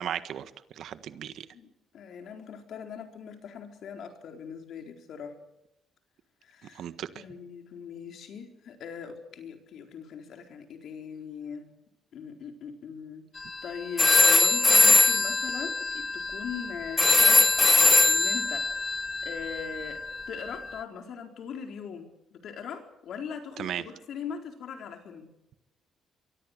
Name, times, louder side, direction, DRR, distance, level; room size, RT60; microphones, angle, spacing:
voice 1, 0.0-1.5 6.7-7.2 23.6-23.8, right 10 dB, 65° right, 11 dB, 1.5 m, -36 dB
voice 2, 1.9-5.4 6.4-6.9 7.1-11.7 12.1-25.3, left 7 dB, 60° left, 4 dB, 4.3 m, -41 dB
sound 1, 13.4-13.6 14.0-20.6, left 3 dB, 15° left, 1.1 m, -22 dB
25.0 x 23.0 x 6.7 m, 0.88 s
cardioid pair, 135°, 0 cm